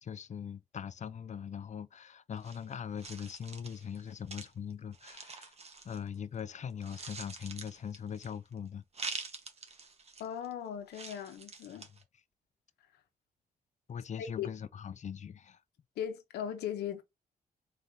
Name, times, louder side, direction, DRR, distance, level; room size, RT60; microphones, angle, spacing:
voice 1, 0.0-5.5 5.8-8.8 11.8-11.9 12.1-12.2 13.9-15.6, left 7 dB, 45° left, 0.6 m, -41 dB
sound 1, 2.4-6.4 6.7-8.5 8.9-10.5 10.9-12.0, right 4 dB, 40° right, 1.2 m, -45 dB
voice 2, 10.2-11.9 14.4-14.5 16.0-17.0, left 10 dB, 90° left, 0.9 m, -38 dB
4.2 x 3.6 x 2.7 m
cardioid pair, 70°, 16 cm